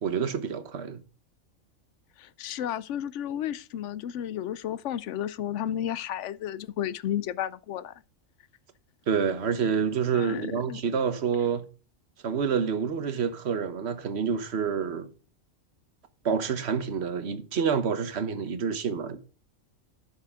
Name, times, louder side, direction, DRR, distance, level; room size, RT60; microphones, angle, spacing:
voice 1, 0.0-1.0 9.1-11.6 12.2-15.1 16.2-19.2, right 6 dB, 55° right, 1.3 m, -28 dB
voice 2, 2.2-7.9 10.1-10.8, left 10 dB, 70° left, 0.9 m, -32 dB
11.0 x 7.1 x 3.6 m
omnidirectional pair, 1.4 m